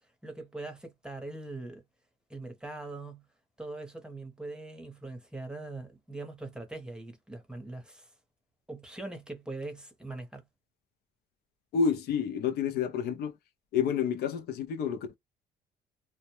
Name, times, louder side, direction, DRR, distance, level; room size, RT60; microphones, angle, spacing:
voice 1, 0.2-1.8 2.3-3.2 3.6-8.1 8.7-10.4, right 2 dB, 5° right, 0.8 m, -41 dB
voice 2, 11.7-13.3 13.7-15.1, left 7 dB, 70° left, 0.5 m, -29 dB
2.1 x 2.0 x 2.9 m
cardioid pair, 110°, 17 cm